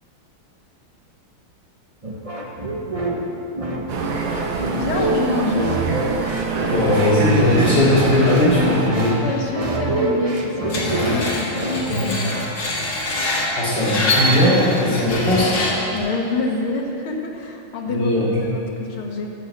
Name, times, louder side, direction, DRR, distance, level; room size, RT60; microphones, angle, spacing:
sound 1, 2.0-12.6, right 1 dB, 35° right, 0.5 m, -25 dB
sound 2, 3.9-8.9, right 5 dB, 85° right, 1.9 m, -26 dB
voice 1, 4.7-5.8 9.2-12.3 15.9-18.1 18.4-19.3, left 2 dB, 90° left, 1 dB, 2.2 m, -26 dB
voice 2, 6.6-9.2 13.6-15.6 17.9-18.4, left 1 dB, 55° left, -7 dB, 4.0 m, -18 dB
Screech, 10.7-16.0, left 1 dB, 70° left, 2.7 m, -24 dB
11.5 x 6.4 x 8.1 m, 2.8 s
omnidirectional pair, 2.3 m